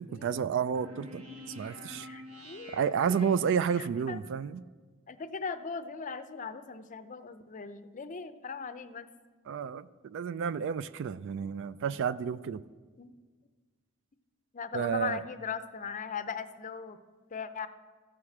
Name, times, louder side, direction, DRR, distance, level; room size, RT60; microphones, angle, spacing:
voice 1, 0.0-2.1 2.7-4.7 9.5-12.6 14.7-15.2, right 7 dB, 60° right, 17 dB, 0.3 m, -31 dB
sound 1, 0.7-4.0, left 1 dB, 90° right, 1.3 m, -47 dB
voice 2, 2.0-2.8 3.8-4.2 5.1-9.1 13.0-13.1 14.5-17.0 17.3-17.7, left 5 dB, 35° left, 10 dB, 0.5 m, -39 dB
14.0 x 4.9 x 7.1 m, 1.4 s
head